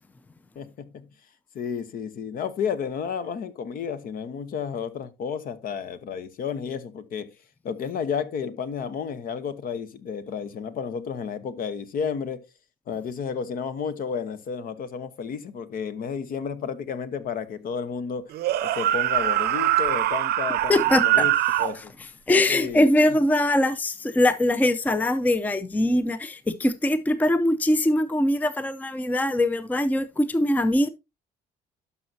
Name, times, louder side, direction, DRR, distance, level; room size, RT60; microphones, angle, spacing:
voice 1, 0.5-1.0 1.5-7.3 7.6-12.4 12.9-18.3 18.6-20.7 21.0-21.3 21.6-21.9 22.5-22.9, left 6 dB, 60° left, 0.9 m, -32 dB
sound 1, 18.3-21.8, right 14 dB, 70° right, 0.6 m, -23 dB
voice 2, 20.7-21.3 21.7-21.8 22.3-30.9, left 1 dB, 10° left, 0.5 m, -22 dB
12.0 x 5.6 x 2.7 m
cardioid pair, 110°, 17 cm